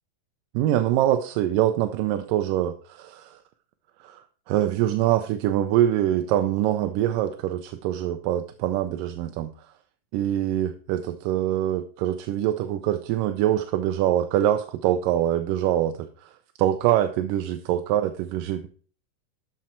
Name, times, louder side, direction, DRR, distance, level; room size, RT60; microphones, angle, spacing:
voice 1, 0.5-3.4 4.0-9.5 10.1-18.7, right 12 dB, 80° right, 8 dB, 2.2 m, -24 dB
12.5 x 5.8 x 4.4 m, 0.42 s
omnidirectional pair, 4.0 m